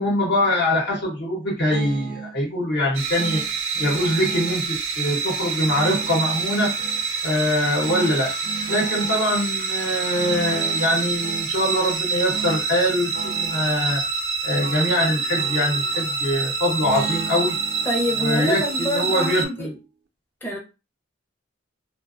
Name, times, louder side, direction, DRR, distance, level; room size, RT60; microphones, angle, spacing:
voice 1, 0.0-3.4 3.8-6.7 7.2-8.3 8.7-14.0 14.4-17.5 18.2-19.7, left 1 dB, 60° left, 0.9 m, -23 dB
sound 1, 1.7-2.4 3.2-4.6 5.6-7.0 7.8-9.3 10.1-11.5 12.3-12.7 12.9-13.7 14.6-16.3 16.8-19.9, right 6 dB, 55° right, 0.3 m, -36 dB
sound 2, 2.9-19.5, right 5 dB, 85° right, 0.7 m, -27 dB
voice 2, 17.8-19.7 20.4-20.6, equal, 10° left, 0.6 m, -26 dB
2.4 x 2.1 x 2.4 m
head